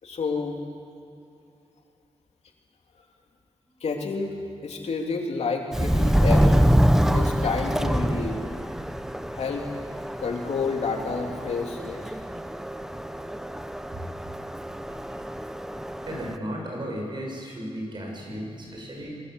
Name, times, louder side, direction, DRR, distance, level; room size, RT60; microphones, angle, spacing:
voice 1, 0.0-0.6 3.8-4.3 4.6-6.6 7.1-8.4 9.3-9.7 10.2-12.0 18.3-18.4, left 4 dB, 85° left, 1 dB, 3.3 m, -29 dB
Subway metro underground, 5.7-16.4, equal, 5° right, 0.8 m, -25 dB
voice 2, 16.0-19.1, equal, 45° right, -1 dB, 7.5 m, -34 dB
28.5 x 22.5 x 8.3 m, 2.7 s
wide cardioid pair, 150°, 11 cm